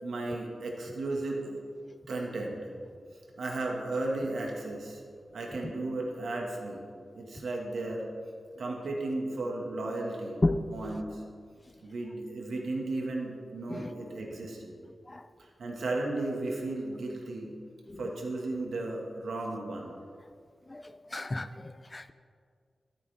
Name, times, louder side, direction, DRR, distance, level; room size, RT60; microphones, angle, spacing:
voice 1, 0.0-1.6 2.1-2.7 3.4-5.0 5.3-6.8 7.1-8.1 8.6-10.4 10.7-11.2 11.8-14.8 15.4-17.5 18.0-19.9, right 2 dB, 85° right, 0 dB, 1.8 m, -34 dB
voice 2, 20.7-22.1, left 2 dB, 20° left, 11 dB, 0.3 m, -32 dB
12.5 x 10.0 x 3.5 m, 2.2 s
wide cardioid pair, 140°, 0 cm